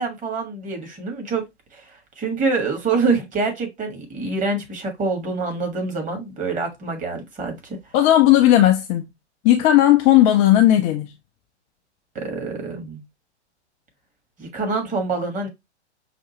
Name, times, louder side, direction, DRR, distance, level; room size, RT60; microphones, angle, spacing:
voice 1, 0.0-1.4 1.7-1.9 2.2-7.8 12.1-13.0 14.4-15.5, right 3 dB, 20° right, 1.5 m, -26 dB
voice 2, 7.9-9.1 9.4-11.1, left 13 dB, 20° left, 0.4 m, -15 dB
5.7 x 2.6 x 2.9 m
figure-of-eight pair, 105°, 35 cm